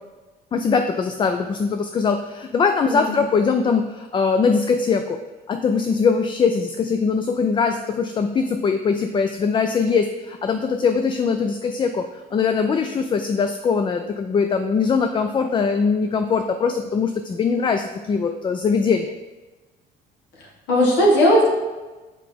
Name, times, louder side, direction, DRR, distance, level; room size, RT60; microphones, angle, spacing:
voice 1, 0.5-5.2 5.5-19.1, left 5 dB, 30° left, 7 dB, 0.3 m, -21 dB
voice 2, 2.9-3.2 20.7-21.5, equal, 80° left, -3 dB, 1.8 m, -17 dB
5.7 x 5.0 x 3.4 m, 1.2 s
cardioid pair, 110°, 17 cm